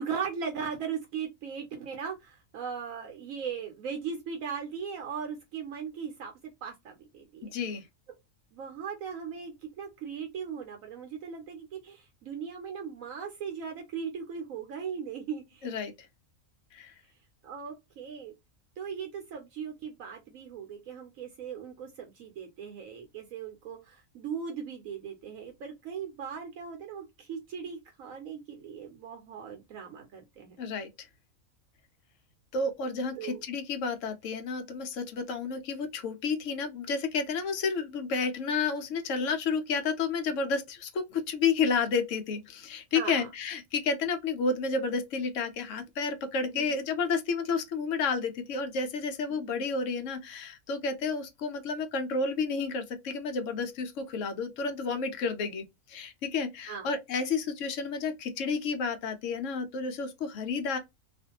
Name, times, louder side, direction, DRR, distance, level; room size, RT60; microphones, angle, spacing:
voice 1, 0.0-6.3 6.6-7.5 8.5-15.7 17.4-18.3 18.8-30.6 33.2-33.4 42.9-43.3 46.5-46.8 49.3-49.5 56.7-56.9, right 6 dB, 75° right, 1.0 m, -38 dB
voice 2, 7.4-7.8 15.6-15.9 16.7-16.9 30.6-31.1 32.5-60.8, left 4 dB, 65° left, 1.0 m, -31 dB
2.5 x 2.5 x 2.7 m
omnidirectional pair, 1.5 m